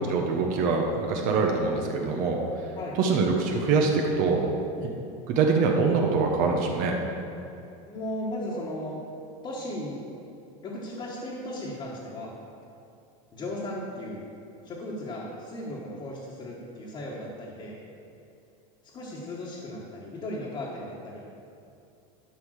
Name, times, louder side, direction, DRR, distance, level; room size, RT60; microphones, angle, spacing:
voice 1, 0.1-2.4 3.0-4.5 5.3-6.9, right 4 dB, 45° right, 1 dB, 1.3 m, -24 dB
voice 2, 2.7-3.2 7.9-9.0 9.4-10.0 10.6-12.3 13.3-14.2 14.6-17.7 18.9-21.2, left 1 dB, 25° left, -6 dB, 1.7 m, -36 dB
11.5 x 5.6 x 6.6 m, 2.7 s
supercardioid pair, 150°, 18 cm